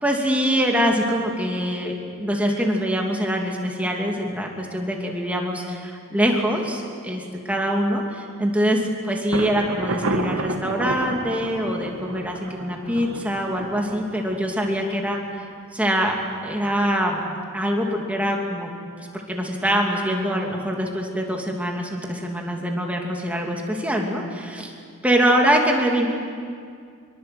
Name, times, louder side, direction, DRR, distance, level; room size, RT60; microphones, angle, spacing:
voice 1, 0.0-15.5 15.7-16.1 16.4-17.2 17.5-18.7 19.1-24.7 25.0-26.1, equal, 5° right, 0 dB, 2.7 m, -24 dB
Thunder, 9.3-15.0, right 2 dB, 75° right, 1.9 m, -31 dB
24.0 x 24.0 x 7.8 m, 2.2 s
head